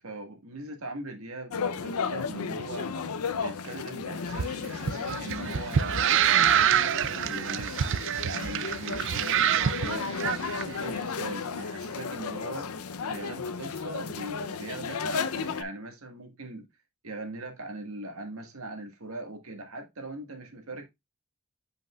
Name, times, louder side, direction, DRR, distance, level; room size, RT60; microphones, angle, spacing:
voice 1, 0.0-2.9 3.4-12.7 13.1-16.7 17.0-20.9, right 2 dB, 75° right, 1.6 m, -40 dB
sound 1, 1.5-15.6, left 5 dB, 85° left, 0.6 m, -34 dB
sound 2, 4.3-10.6, right 10 dB, 55° right, 0.4 m, -26 dB
8.2 x 5.2 x 2.3 m
head